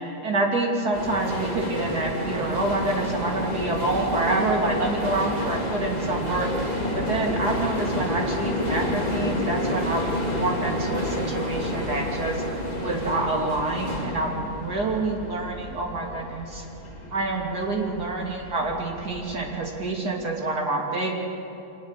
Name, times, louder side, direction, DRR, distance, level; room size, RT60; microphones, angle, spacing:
voice 1, 0.2-12.4 12.8-16.6 17.1-21.1, right 2 dB, 85° right, -1 dB, 3.4 m, -27 dB
sound 1, 0.9-19.5, left 1 dB, 25° left, 3.0 m, -30 dB
24.5 x 20.0 x 6.7 m, 2.9 s
omnidirectional pair, 1.6 m